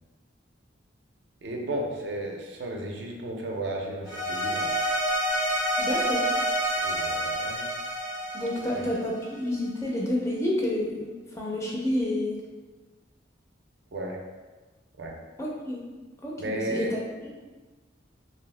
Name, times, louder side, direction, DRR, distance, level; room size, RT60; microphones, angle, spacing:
voice 1, 1.4-4.7 6.8-7.7 8.7-8.9 13.9-14.2 15.0-15.1 16.4-16.9, right 1 dB, 65° right, 1 dB, 0.4 m, -34 dB
sound 1, 4.0-9.4, right 1 dB, 85° left, 1.1 m, -28 dB
voice 2, 5.8-6.2 8.3-12.4 15.4-15.8 16.2-16.9, left 1 dB, 15° left, -3 dB, 0.4 m, -29 dB
2.8 x 2.6 x 3.1 m, 1.3 s
head